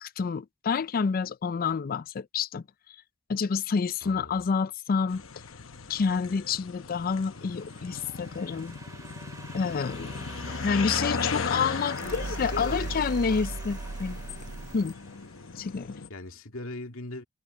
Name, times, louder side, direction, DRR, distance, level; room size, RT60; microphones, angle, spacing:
voice 1, 0.0-2.6 3.3-5.2 5.9-8.8 9.5-10.1 10.6-14.2 14.7-15.0 15.6-15.9, left 5 dB, 45° left, 0.4 m, -28 dB
voice 2, 4.0-4.3 11.3-13.4 16.1-17.2, left 2 dB, 90° left, 2.2 m, -40 dB
sound 1, 5.1-16.1, left 5 dB, 70° left, 1.0 m, -37 dB
sound 2, 7.1-15.7, right 2 dB, 15° right, 2.3 m, -47 dB
sound 3, 12.0-14.9, right 3 dB, 40° right, 0.4 m, -37 dB
head